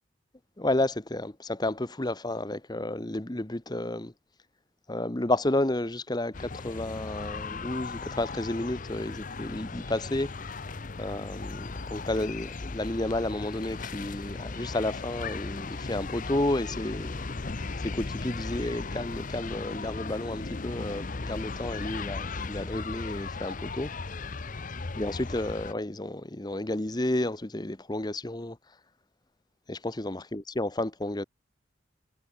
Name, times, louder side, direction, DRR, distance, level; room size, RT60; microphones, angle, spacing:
voice 1, 0.6-4.1 4.9-10.7 11.0-24.2 24.9-28.8 29.7-31.2, left 1 dB, 20° left, 1.0 m, -31 dB
sound 1, 6.3-25.7, left 3 dB, 40° left, 0.8 m, -37 dB
head